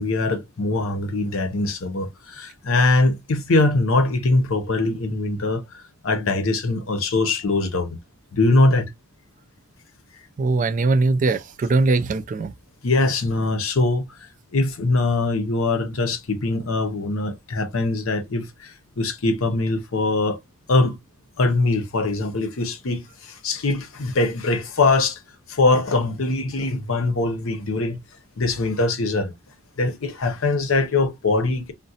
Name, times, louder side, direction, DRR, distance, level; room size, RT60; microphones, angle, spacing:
voice 1, 0.0-5.6 6.0-7.9 8.3-8.9 12.8-14.1 14.5-18.7 19.0-20.4 20.7-21.0 21.4-23.0 23.4-25.2 25.5-28.0 28.4-29.3 29.8-31.7, left 2 dB, 80° left, 0.7 m, -22 dB
voice 2, 10.4-12.5, right 3 dB, 40° right, 0.3 m, -21 dB
3.7 x 2.1 x 2.7 m
head